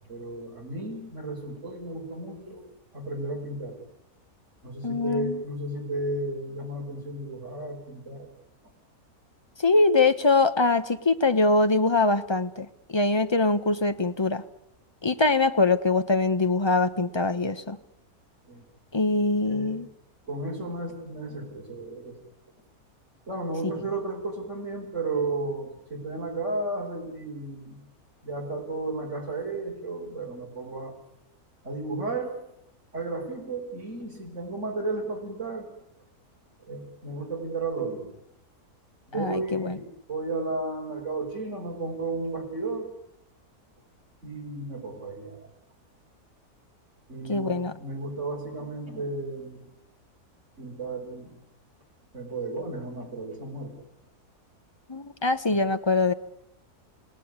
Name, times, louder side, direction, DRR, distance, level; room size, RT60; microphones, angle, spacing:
voice 1, 0.0-2.7 2.9-3.8 4.6-8.3 18.5-18.6 19.4-19.8 20.2-22.2 23.3-27.8 28.2-30.9 31.6-32.4 32.9-35.7 36.6-38.1 39.1-42.9 44.2-45.5 47.1-49.7 50.6-51.4 52.1-53.7 55.5-55.6, right 2 dB, 50° right, 1 dB, 5.8 m, -33 dB
voice 2, 4.8-5.4 9.6-14.4 15.0-17.8 18.9-19.9 39.1-39.8 47.3-47.7 54.9-56.1, left 3 dB, 20° left, 10 dB, 1.0 m, -23 dB
29.0 x 17.5 x 9.8 m, 0.82 s
omnidirectional pair, 1.6 m